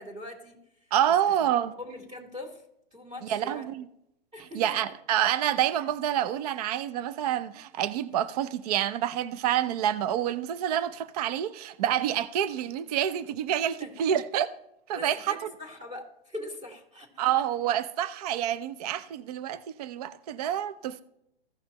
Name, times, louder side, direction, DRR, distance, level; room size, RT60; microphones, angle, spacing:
voice 1, 0.0-0.9 1.3-1.4 1.8-2.6 2.9-3.7 4.3-4.9 13.8-13.9 14.9-17.1 17.4-17.5, left 1 dB, 15° right, 1.7 m, -42 dB
voice 2, 0.9-1.7 3.3-3.8 4.5-14.5 14.9-15.4 17.2-21.0, right 10 dB, 40° right, 0.5 m, -28 dB
15.0 x 5.6 x 2.9 m
hypercardioid pair, 150°, 31 cm